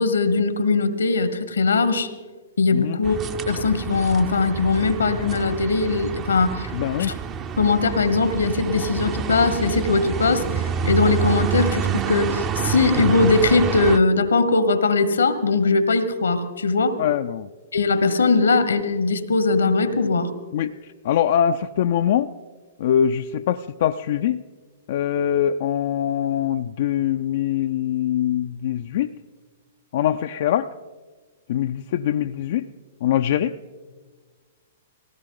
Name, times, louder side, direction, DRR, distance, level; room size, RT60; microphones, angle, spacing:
voice 1, 0.0-2.1 2.6-6.7 7.0-7.2 7.6-10.4 10.8-17.0 17.7-20.3, left 3 dB, 85° left, 12 dB, 1.3 m, -20 dB
sound 1, 3.0-14.0, right 7 dB, 30° right, 0.7 m, -28 dB
voice 2, 6.7-7.1 17.0-17.5 20.5-20.7 21.0-22.3 22.8-24.4 24.9-29.1 29.9-30.7 31.5-32.7 33.0-33.5, left 10 dB, 60° left, 7 dB, 0.4 m, -23 dB
19.5 x 17.5 x 3.9 m, 1.4 s
hypercardioid pair, 120°, 0 cm